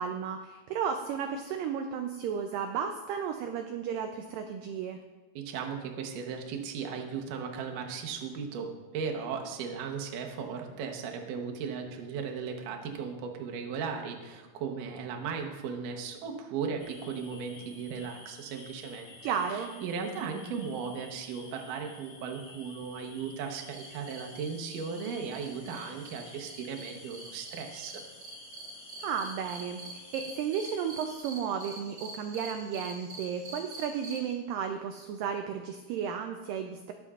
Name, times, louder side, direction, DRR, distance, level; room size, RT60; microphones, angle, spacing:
voice 1, 0.0-5.0 19.2-19.7 29.0-36.9, right 7 dB, 85° right, 5 dB, 1.9 m, -33 dB
voice 2, 5.4-28.0, right 6 dB, 65° right, 2 dB, 2.3 m, -37 dB
sound 1, 16.8-31.2, left 2 dB, 65° left, 3.6 m, -51 dB
sound 2, 23.7-34.3, right 2 dB, 30° right, 1.7 m, -46 dB
20.5 x 6.9 x 2.4 m, 1.2 s
omnidirectional pair, 4.6 m